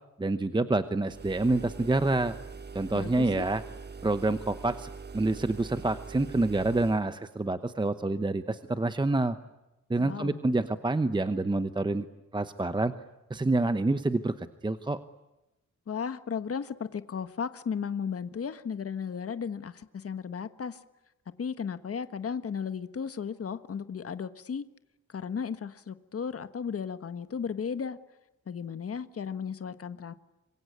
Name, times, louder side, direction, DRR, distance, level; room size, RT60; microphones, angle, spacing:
voice 1, 0.2-2.3 2.7-3.6 4.0-9.4 9.9-12.0 12.3-12.9 13.3-15.0, right 2 dB, 15° right, 0.9 m, -27 dB
sound 1, 1.0-7.1, right 4 dB, 30° right, 1.4 m, -43 dB
voice 2, 2.9-3.5 10.0-10.4 15.9-20.8 21.4-24.6 25.1-28.0 28.5-30.1, left 6 dB, 45° left, 1.4 m, -35 dB
26.5 x 23.5 x 9.5 m
wide cardioid pair, 160°, 31 cm